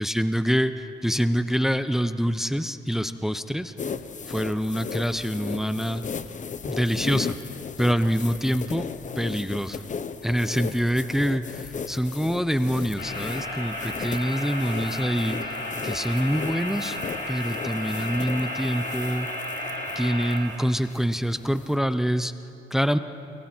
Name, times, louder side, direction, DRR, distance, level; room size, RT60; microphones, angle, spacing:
voice 1, 0.0-3.7 4.3-6.0 6.6-7.4 7.8-8.9 9.2-9.8 10.2-15.6 15.8-17.0 17.3-19.3 20.0-22.3 22.7-23.0, equal, ahead, 11 dB, 0.8 m, -25 dB
sound 1, 3.8-21.8, left 6 dB, 40° left, 0.9 m, -36 dB
sound 2, 13.0-20.4, left 1 dB, 60° left, 5.6 m, -33 dB
29.5 x 23.0 x 4.6 m, 2.6 s
cardioid pair, 90°, 20 cm